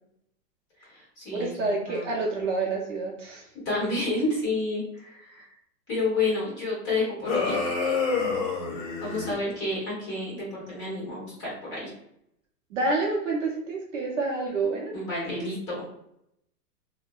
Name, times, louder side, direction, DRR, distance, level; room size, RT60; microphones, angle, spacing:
voice 1, 0.8-2.1 3.6-5.5 5.9-7.6 9.0-11.9 14.9-15.8, left 2 dB, 25° left, -6 dB, 1.2 m, -30 dB
voice 2, 1.3-3.5 12.7-14.9, right 3 dB, 50° right, -2 dB, 0.6 m, -28 dB
sound 1, 7.2-9.4, left 4 dB, 45° left, 1.1 m, -27 dB
2.5 x 2.1 x 2.3 m, 0.76 s
hypercardioid pair, 150°, 49 cm